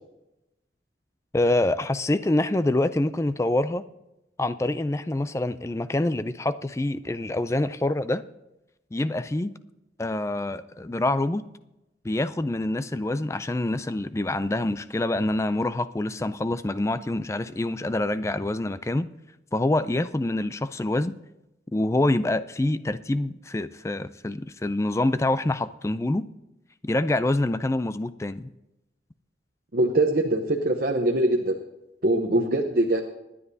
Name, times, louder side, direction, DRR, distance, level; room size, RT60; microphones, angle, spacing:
voice 1, 1.3-3.8 4.4-8.2 8.9-9.5 10.0-11.5 12.0-19.1 19.5-21.2 21.7-26.3 26.8-28.5, left 2 dB, 15° left, 13 dB, 0.3 m, -26 dB
voice 2, 29.7-31.6 32.0-33.0, right 1 dB, 55° right, 3 dB, 0.8 m, -22 dB
24.0 x 10.0 x 2.7 m, 0.94 s
head